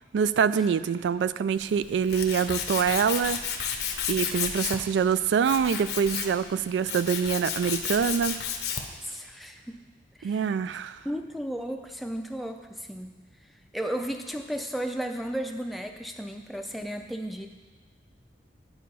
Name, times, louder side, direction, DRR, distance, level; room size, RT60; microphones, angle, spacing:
voice 1, 0.1-3.4 4.1-8.4 10.2-11.0, right 7 dB, 85° right, 15 dB, 0.3 m, -25 dB
Tools, 1.6-9.0, left 7 dB, 65° left, 0.7 m, -32 dB
voice 2, 9.0-9.8 10.2-10.5 11.0-13.2 13.7-17.5, equal, ahead, 5 dB, 0.4 m, -34 dB
9.1 x 4.8 x 5.5 m, 1.4 s
head